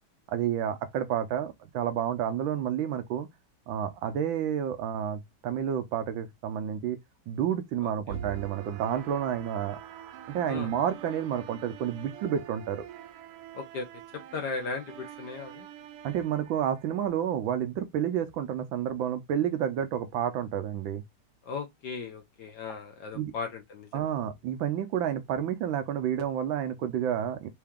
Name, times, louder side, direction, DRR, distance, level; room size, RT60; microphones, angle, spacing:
voice 1, 0.3-3.3 3.7-7.0 7.3-9.8 10.3-12.8 16.0-21.0 23.1-23.3 23.9-27.5, right 9 dB, 70° right, 1.2 m, -30 dB
voice 2, 7.8-8.2 10.5-10.7 13.5-13.9 14.3-15.7 21.4-24.1, left 4 dB, 65° left, 1.2 m, -37 dB
sound 1, 8.1-17.1, right 10 dB, 90° right, 1.5 m, -45 dB
4.7 x 2.7 x 3.5 m
omnidirectional pair, 2.4 m